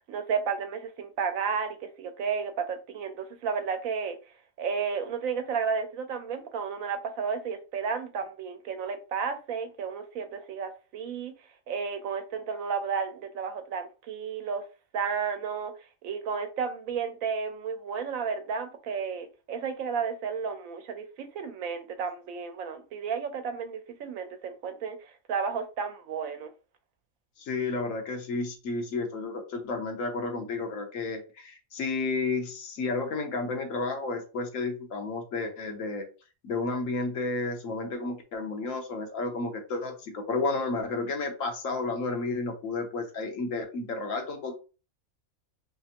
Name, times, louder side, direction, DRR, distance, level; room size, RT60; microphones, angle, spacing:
voice 1, 0.0-4.2 4.6-11.3 11.7-14.6 14.9-15.7 16.0-26.5, right 6 dB, 80° right, 1.1 m, -32 dB
voice 2, 27.4-36.1 36.4-44.5, left 3 dB, 75° left, 1.2 m, -32 dB
3.4 x 3.3 x 2.8 m
omnidirectional pair, 1.4 m